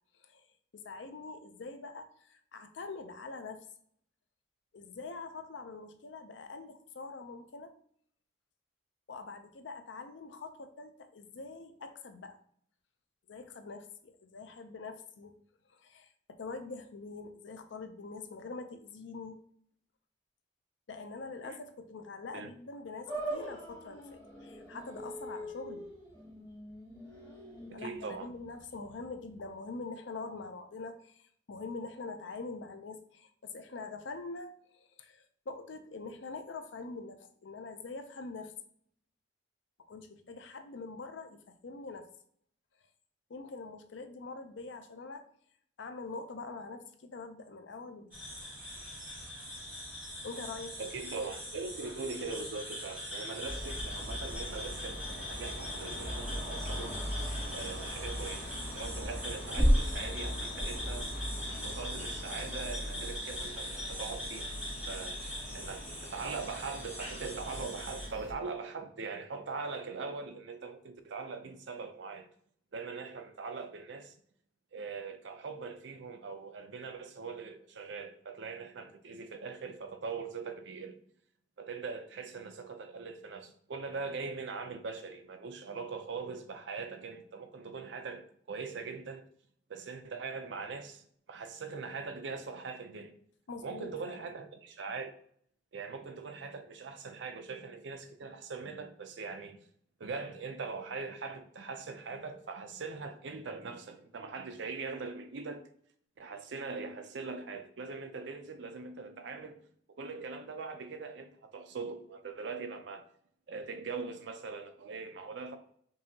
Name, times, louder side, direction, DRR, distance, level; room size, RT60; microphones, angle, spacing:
voice 1, 0.8-3.6 4.7-7.7 9.1-12.4 13.3-15.3 15.7-16.1 16.4-19.4 20.9-25.9 27.7-38.5 39.9-42.1 43.3-45.2 45.8-48.2 50.2-50.9 93.5-94.2, left 3 dB, 75° left, 0.5 m, -44 dB
sound 1, 23.1-29.5, right 1 dB, 25° left, 1.1 m, -43 dB
voice 2, 27.7-28.3 50.8-57.0 57.5-61.1 61.6-64.5 64.9-65.2 65.5-72.3 72.7-74.2 74.7-81.0 81.6-89.3 89.7-93.1 93.6-95.1 95.7-99.6 100.0-105.6 106.2-109.6 110.0-113.0 113.5-115.6, right 4 dB, 70° right, 0.5 m, -41 dB
sound 2, 48.1-68.1, equal, 10° right, 1.5 m, -37 dB
sound 3, 53.4-68.3, equal, 40° left, 1.2 m, -41 dB
5.4 x 2.7 x 2.7 m
head